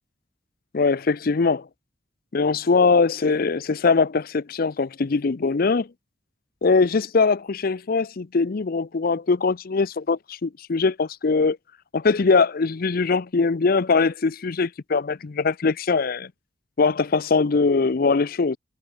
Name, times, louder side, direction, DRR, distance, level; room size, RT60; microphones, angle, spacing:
voice 1, 0.7-1.7 2.3-5.9 6.6-11.6 11.9-16.3 16.8-18.6, left 4 dB, 50° left, 0.5 m, -21 dB
head